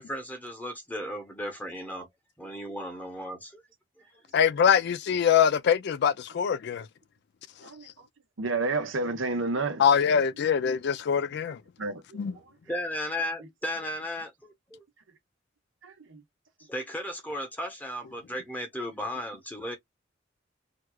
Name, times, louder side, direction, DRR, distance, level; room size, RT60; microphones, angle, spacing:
voice 1, 0.0-2.1 2.4-3.6 12.7-14.8 16.7-19.8, left 1 dB, 10° left, 0.9 m, -35 dB
voice 2, 4.3-6.9 9.8-11.6 12.1-12.3, left 7 dB, 60° left, 0.3 m, -23 dB
voice 3, 8.4-9.8 11.8-12.4 15.8-16.2, right 3 dB, 90° right, 1.0 m, -30 dB
4.5 x 2.3 x 2.2 m
head